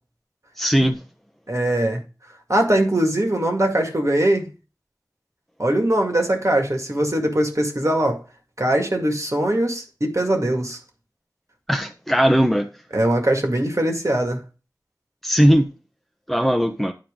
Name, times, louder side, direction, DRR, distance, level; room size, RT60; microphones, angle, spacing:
voice 1, 0.6-1.0 11.7-12.7 15.2-15.7 16.3-16.9, equal, 5° left, 0.9 m, -18 dB
voice 2, 1.5-2.0 2.5-4.5 5.6-8.2 8.6-10.8 12.9-14.4, right 1 dB, 45° right, 2.0 m, -21 dB
10.5 x 4.5 x 3.7 m
wide cardioid pair, 50°, 7 cm